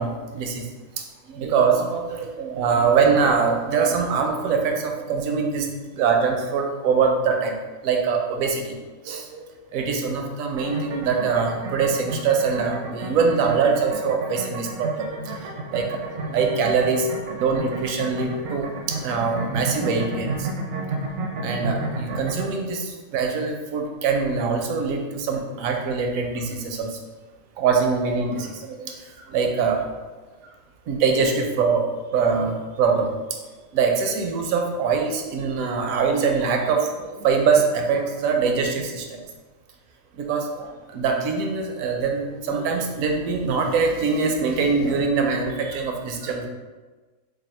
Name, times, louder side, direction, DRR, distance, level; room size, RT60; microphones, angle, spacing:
voice 1, 0.0-0.7 1.0-7.6 7.8-8.8 9.0-15.1 15.4-20.5 21.4-27.0 27.6-29.8 30.9-31.9 32.1-33.1 33.7-39.2 40.2-46.5, right 5 dB, 85° right, 2 dB, 1.0 m, -23 dB
sound 1, 10.5-22.5, right 2 dB, 65° right, 0.6 m, -32 dB
3.5 x 2.3 x 4.1 m, 1.3 s
omnidirectional pair, 1.4 m